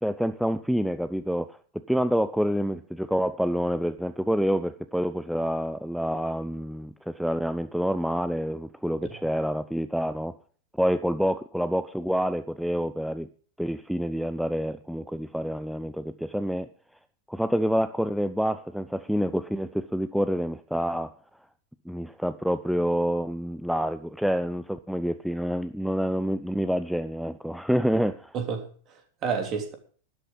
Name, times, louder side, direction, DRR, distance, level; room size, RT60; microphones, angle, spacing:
voice 1, 0.0-10.3 10.7-13.3 13.6-16.7 17.3-21.1 21.9-28.3, equal, ahead, 0.6 m, -27 dB
voice 2, 28.3-29.7, right 6 dB, 30° right, 3.2 m, -31 dB
12.5 x 11.5 x 5.4 m
figure-of-eight pair, 90°, 0 cm